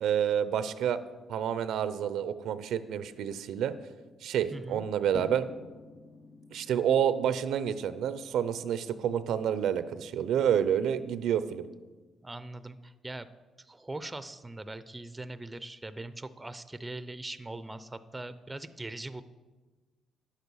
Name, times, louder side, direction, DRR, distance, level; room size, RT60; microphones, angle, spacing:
voice 1, 0.0-1.0 1.3-3.7 4.2-5.5 6.5-11.7, right 9 dB, 80° right, 13 dB, 0.6 m, -29 dB
voice 2, 4.5-4.8 12.2-13.3 13.6-19.2, right 2 dB, 15° right, 13 dB, 0.6 m, -41 dB
sound 1, 5.1-11.4, left 3 dB, 35° left, 2.3 m, -51 dB
10.0 x 8.1 x 6.3 m, 1.3 s
cardioid pair, 90°, 0 cm